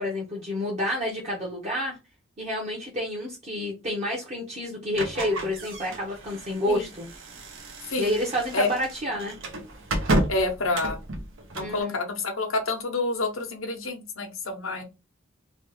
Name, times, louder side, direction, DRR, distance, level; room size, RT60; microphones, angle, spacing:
voice 1, 0.0-2.0 2.4-7.1 8.0-9.3 11.6-11.9, left 1 dB, 35° right, -3 dB, 0.9 m, -29 dB
sound 1, 4.9-11.8, right 1 dB, 75° right, 0.8 m, -32 dB
voice 2, 10.3-11.0 11.5-14.8, left 3 dB, 85° left, 3 dB, 0.9 m, -28 dB
3.2 x 2.3 x 3.2 m, 0.26 s
head